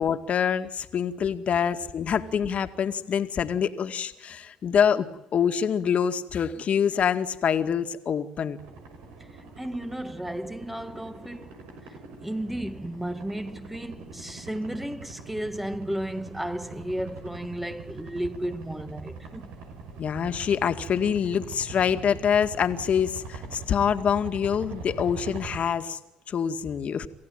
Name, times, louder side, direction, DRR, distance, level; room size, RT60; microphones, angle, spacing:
voice 1, 0.0-8.6 20.0-26.0 26.3-27.1, left 7 dB, 55° left, 2.1 m, -25 dB
sound 1, 8.6-25.6, right 3 dB, 85° right, 5.8 m, -43 dB
voice 2, 9.3-19.6, right 1 dB, 5° right, 1.8 m, -34 dB
28.0 x 15.5 x 9.3 m
supercardioid pair, 65°, 3 cm